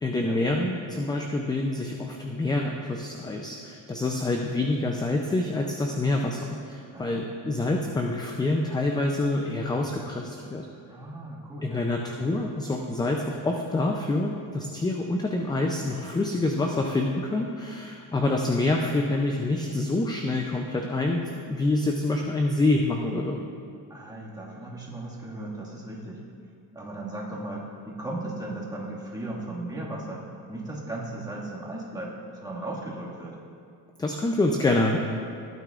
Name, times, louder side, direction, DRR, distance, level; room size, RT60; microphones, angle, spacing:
voice 1, 0.0-10.6 11.6-23.4 34.0-35.0, left 2 dB, 10° left, 2 dB, 0.4 m, -26 dB
voice 2, 6.9-7.3 10.9-11.8 23.9-26.2 26.7-30.2 30.5-32.1 32.4-33.4, right 2 dB, 10° right, -5 dB, 1.9 m, -36 dB
16.0 x 9.1 x 2.4 m, 2.3 s
cardioid pair, 125°, 43 cm